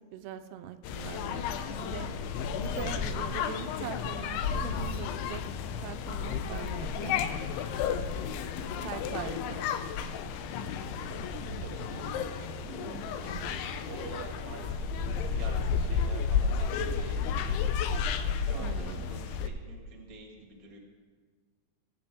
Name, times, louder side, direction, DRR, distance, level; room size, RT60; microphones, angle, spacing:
voice 1, 0.1-5.4 5.8-7.5 8.8-9.8 12.8-13.1 18.6-19.0, right 9 dB, 85° right, 9 dB, 2.6 m, -42 dB
sound 1, 0.8-19.5, left 6 dB, 85° left, 2.6 m, -32 dB
voice 2, 8.6-8.9 11.6-17.8 18.4-20.8, right 3 dB, 45° right, 0 dB, 1.1 m, -47 dB
Bangkok Taxi Ride, 10.6-17.8, right 5 dB, 65° right, 1.9 m, -46 dB
20.0 x 7.7 x 3.5 m, 1.5 s
omnidirectional pair, 4.7 m